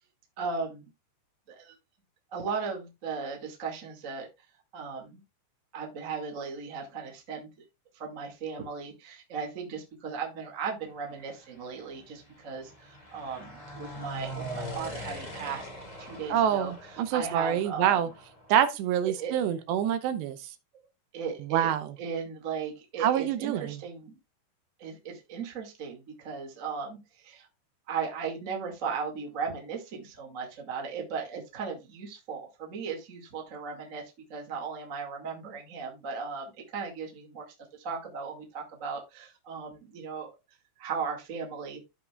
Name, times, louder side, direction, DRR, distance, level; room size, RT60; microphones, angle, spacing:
voice 1, 0.4-0.9 1.5-1.7 2.3-4.3 4.7-5.2 5.7-7.5 7.9-15.7 16.0-18.0 19.0-19.3 21.1-21.7 22.0-24.1 24.8-27.5 27.9-40.3 40.8-41.8, right 5 dB, 35° right, 1.2 m, -37 dB
sound 1, 11.1-18.5, equal, 30° left, 0.7 m, -42 dB
voice 2, 16.3-18.1 18.5-20.4 21.4-21.9 23.0-23.8, right 10 dB, 80° right, 2.9 m, -26 dB
14.0 x 5.5 x 2.3 m
omnidirectional pair, 5.0 m